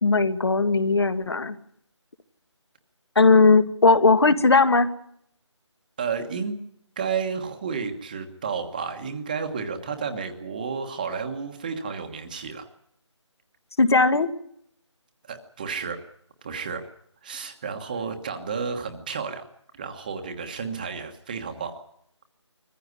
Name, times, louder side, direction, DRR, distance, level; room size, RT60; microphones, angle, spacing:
voice 1, 0.0-1.5 3.1-4.9 13.8-14.3, left 3 dB, 55° left, 11 dB, 1.8 m, -18 dB
voice 2, 6.0-6.5 7.0-12.7 15.2-16.0 16.4-16.8 17.2-19.4 19.8-21.8, right 5 dB, 15° right, 6 dB, 1.2 m, -31 dB
22.5 x 15.0 x 9.6 m, 0.71 s
figure-of-eight pair, 170°, 16 cm